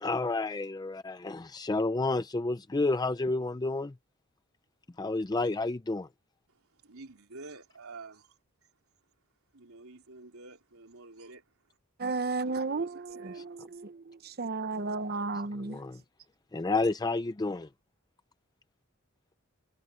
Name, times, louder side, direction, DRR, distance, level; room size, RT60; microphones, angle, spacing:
voice 1, 0.0-3.9 5.0-6.1 13.3-13.4 15.6-16.0 16.5-17.7, left 3 dB, 20° left, 0.4 m, -30 dB
voice 2, 6.5-8.4 9.5-11.4 12.4-13.5, right 3 dB, 80° right, 3.6 m, -49 dB
voice 3, 12.0-15.8, right 3 dB, 45° right, 0.9 m, -33 dB
head